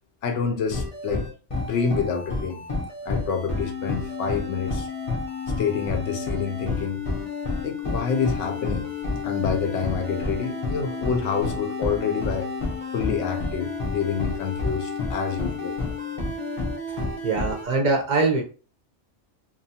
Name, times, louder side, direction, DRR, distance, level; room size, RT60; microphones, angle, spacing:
voice 1, 0.2-1.2 1.6-2.6 3.1-4.9 5.6-7.0 7.6-8.9 9.2-12.5 12.9-15.8, left 6 dB, 80° left, 0.9 m, -27 dB
sound 1, 0.7-17.6, left 3 dB, 40° left, 0.5 m, -30 dB
voice 2, 17.2-18.4, right 3 dB, 50° right, 0.6 m, -22 dB
2.8 x 2.3 x 2.7 m
omnidirectional pair, 1.2 m